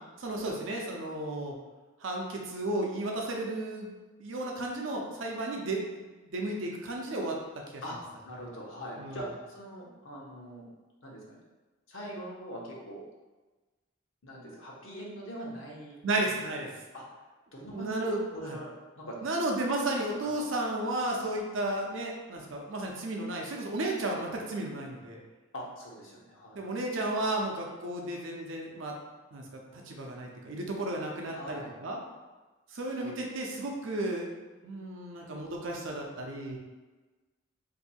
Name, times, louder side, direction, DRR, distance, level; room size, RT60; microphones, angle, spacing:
voice 1, 0.2-1.5 2.0-3.9 4.2-5.8 6.2-7.4 7.7-7.8 9.0-9.2 16.0-16.7 17.7-18.6 19.2-25.2 26.5-28.9 29.3-29.4 29.7-32.0 32.7-34.3 34.6-36.6, right 2 dB, 75° right, 0 dB, 0.6 m, -33 dB
voice 2, 8.2-10.7 11.0-11.4 11.9-13.0 14.2-16.0 16.9-17.0 17.5-18.7 18.9-19.2 20.2-20.4 25.5-26.6 31.3-31.7 33.0-33.1 33.5-33.7, equal, 80° left, -3 dB, 0.9 m, -42 dB
2.7 x 2.6 x 4.1 m, 1.2 s
head